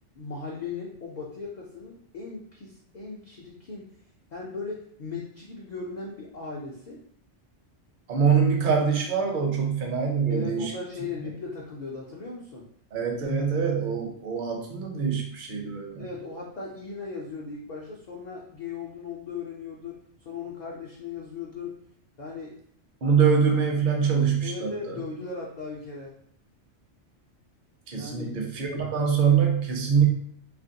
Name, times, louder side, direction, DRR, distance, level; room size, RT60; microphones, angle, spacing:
voice 1, 0.2-3.9 4.3-7.0 10.3-12.6 16.0-21.8 22.2-22.5 24.4-26.1 27.9-28.3, left 4 dB, 60° left, -3 dB, 0.5 m, -37 dB
voice 2, 8.1-10.7 12.9-16.0 23.0-25.0 27.9-30.1, right 6 dB, 55° right, 1 dB, 0.7 m, -24 dB
2.9 x 2.5 x 2.7 m, 0.65 s
omnidirectional pair, 1.2 m